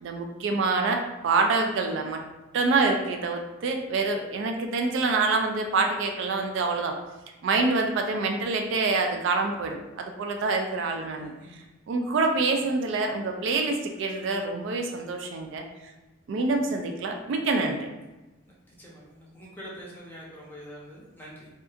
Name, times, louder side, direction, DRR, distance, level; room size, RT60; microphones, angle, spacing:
voice 1, 0.0-2.2 2.5-7.0 7.4-11.3 11.9-15.6 16.3-17.9, right 3 dB, 70° right, 3 dB, 0.3 m, -26 dB
voice 2, 11.1-11.6 18.8-21.5, equal, 10° left, -5 dB, 0.6 m, -45 dB
2.7 x 2.3 x 2.4 m, 1.1 s
head